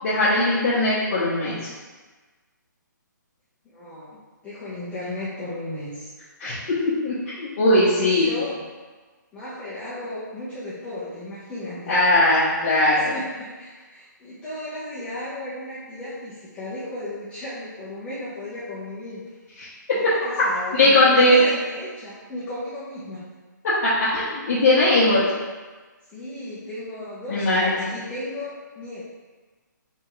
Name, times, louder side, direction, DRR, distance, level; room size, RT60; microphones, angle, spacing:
voice 1, 0.0-1.6 6.4-8.3 11.9-13.1 19.6-20.1 20.7-21.4 23.6-25.2 27.3-27.9, left 1 dB, 45° left, -10 dB, 1.0 m, -19 dB
voice 2, 3.6-4.2 4.4-6.1 7.7-8.7 9.3-12.0 13.0-19.2 19.9-23.3 26.1-29.0, left 1 dB, 10° left, -13 dB, 0.8 m, -35 dB
3.6 x 3.4 x 3.1 m, 1.3 s
hypercardioid pair, 155°, 11 cm